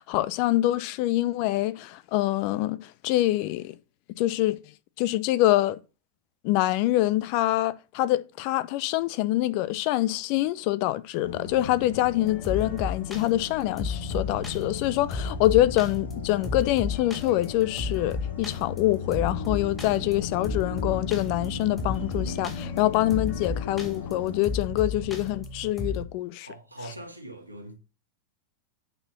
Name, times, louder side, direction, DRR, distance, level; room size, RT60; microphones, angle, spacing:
voice 1, 0.0-3.8 4.2-4.6 5.0-5.8 6.4-26.5, left 15 dB, 45° left, 0.7 m, -25 dB
sound 1, 11.2-24.4, left 5 dB, 75° left, 1.9 m, -37 dB
sound 2, 12.2-26.1, left 3 dB, 15° left, 3.1 m, -34 dB
voice 2, 26.4-27.7, right 1 dB, 90° right, 1.9 m, -42 dB
8.8 x 4.7 x 5.3 m
figure-of-eight pair, 90°, 0 cm